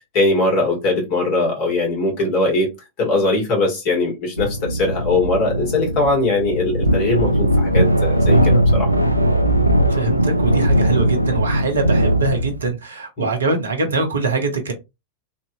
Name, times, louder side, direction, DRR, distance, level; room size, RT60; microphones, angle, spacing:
voice 1, 0.1-2.7 3.0-8.9 13.2-13.3, left 2 dB, 45° left, 1.8 m, -20 dB
sound 1, 4.4-12.7, right 1 dB, 90° right, 0.3 m, -18 dB
voice 2, 9.9-14.7, right 4 dB, 70° right, 0.8 m, -23 dB
3.3 x 2.7 x 2.7 m
figure-of-eight pair, 90°, 0 cm